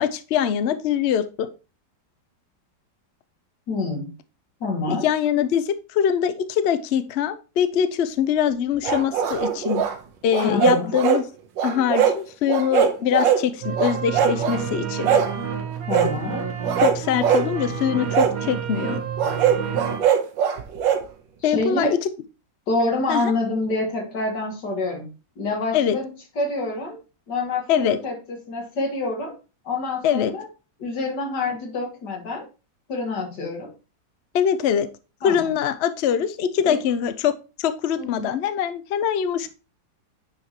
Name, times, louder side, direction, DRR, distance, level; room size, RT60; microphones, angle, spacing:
voice 1, 0.0-1.5 4.9-9.8 10.2-11.2 11.6-15.1 16.8-19.0 21.4-22.0 23.1-23.3 25.7-26.0 27.7-28.0 30.0-30.3 34.3-34.9 35.2-39.5, left 9 dB, 85° left, 11 dB, 0.5 m, -23 dB
voice 2, 3.7-4.1 4.6-5.1 10.4-10.9 15.9-16.5 21.4-22.0 22.7-27.0 27.3-29.4 29.6-30.5 30.8-32.5 32.9-33.7 35.2-35.5 36.7-36.8 38.0-38.3, left 2 dB, 65° left, 2 dB, 2.3 m, -27 dB
sound 1, 8.8-9.9 10.3-11.2 11.6-12.2 12.5-13.4 13.8-14.6 15.0-15.3 15.9-16.1 16.6-17.5 18.1-18.3 19.2-21.0, right 9 dB, 80° right, 1.6 m, -21 dB
sound 2, 13.6-20.0, right 7 dB, 55° right, 1.3 m, -29 dB
9.4 x 5.1 x 2.9 m, 0.32 s
omnidirectional pair, 2.0 m